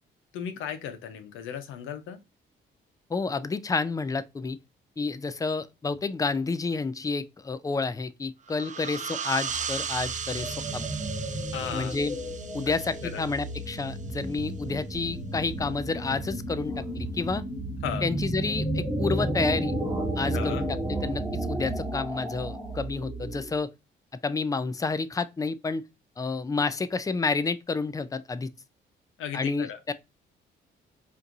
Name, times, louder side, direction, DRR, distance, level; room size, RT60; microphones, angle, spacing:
voice 1, 0.3-2.2 11.5-12.0 13.0-13.2 17.8-18.1 20.3-20.6 29.2-29.8, left 8 dB, 85° left, 0.8 m, -35 dB
voice 2, 3.1-4.6 5.0-10.9 11.7-12.1 12.5-17.4 18.0-19.7 20.2-23.7 24.2-25.8 26.2-28.5 29.3-29.9, left 4 dB, 15° left, 0.4 m, -30 dB
sound 1, 8.5-13.8, right 7 dB, 40° right, 0.5 m, -36 dB
sound 2, 9.5-23.6, right 1 dB, ahead, 1.2 m, -32 dB
4.4 x 2.6 x 2.5 m
cardioid pair, 90°, 20 cm